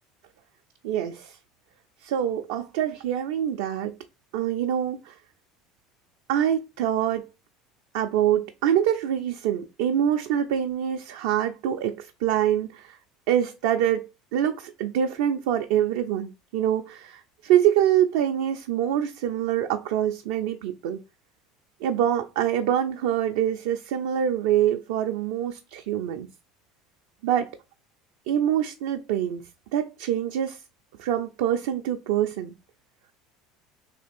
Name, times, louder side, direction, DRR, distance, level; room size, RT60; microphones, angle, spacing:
voice 1, 0.8-1.4 2.0-3.9 4.3-5.1 6.3-7.3 7.9-13.0 13.3-21.0 21.8-26.3 27.2-27.6 28.3-29.4 29.7-30.6 31.0-32.5, right 10 dB, 70° right, 0.4 m, -25 dB
3.3 x 2.8 x 4.2 m
hypercardioid pair, 80°, 0 cm